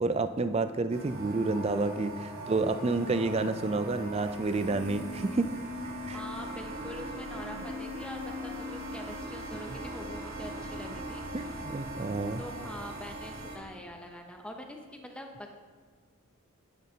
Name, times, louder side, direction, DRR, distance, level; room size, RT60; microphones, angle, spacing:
voice 1, 0.0-5.5 6.1-6.2 11.3-12.4, right 3 dB, 30° right, 10 dB, 0.3 m, -29 dB
sound 1, 0.9-13.6, right 1 dB, 75° right, 2.4 m, -41 dB
Human voice, 2.8-3.7 4.7-6.5 7.3-8.9, left 4 dB, 40° left, 1.2 m, -42 dB
voice 2, 3.1-3.6 6.0-11.6 12.4-15.5, equal, 5° left, 3 dB, 0.7 m, -44 dB
10.5 x 10.0 x 2.8 m, 1.5 s
head